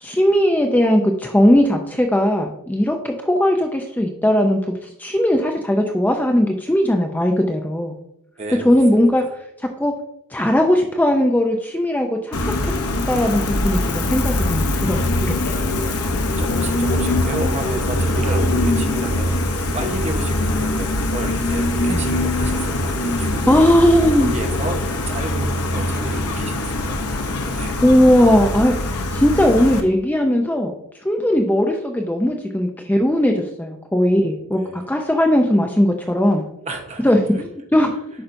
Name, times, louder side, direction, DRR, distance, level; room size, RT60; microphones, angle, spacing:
voice 1, 0.0-7.9 8.6-9.2 9.8-9.9 10.3-12.7 13.1-15.3 21.9-22.1 23.5-24.3 27.8-30.7 31.0-33.3 33.6-36.4 37.0-37.9, equal, 10° left, 3 dB, 0.5 m, -18 dB
voice 2, 8.4-9.0 15.6-23.9 24.2-27.7 34.4-34.9 36.7-37.4, right 2 dB, 30° right, 4 dB, 1.0 m, -32 dB
Gull seagull, 12.3-29.8, left 1 dB, 85° left, 0.8 m, -22 dB
8.7 x 5.5 x 2.6 m, 0.76 s
head